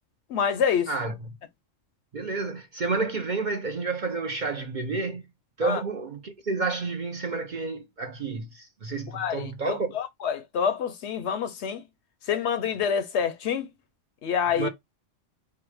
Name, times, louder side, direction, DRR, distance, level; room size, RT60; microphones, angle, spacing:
voice 1, 0.3-0.9 5.6-5.8 9.1-11.8 12.2-13.7 14.2-14.7, left 7 dB, 65° left, 0.8 m, -27 dB
voice 2, 2.1-5.2 5.6-9.9 14.6-14.7, right 3 dB, 45° right, 0.7 m, -30 dB
4.7 x 2.1 x 4.7 m
omnidirectional pair, 1.3 m